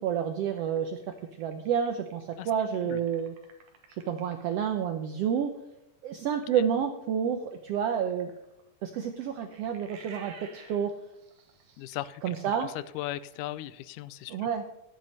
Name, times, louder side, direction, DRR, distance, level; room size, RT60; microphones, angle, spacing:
voice 1, 0.0-3.3 4.1-5.5 6.0-8.3 8.8-10.9 12.2-12.7 14.3-14.6, right 8 dB, 85° right, 6 dB, 1.3 m, -29 dB
sound 1, 0.6-4.7 7.5-13.6, right 5 dB, 65° right, 2.5 m, -53 dB
voice 2, 11.8-14.5, left 14 dB, 80° left, 16 dB, 2.0 m, -38 dB
10.5 x 9.1 x 5.4 m, 0.85 s
omnidirectional pair, 3.8 m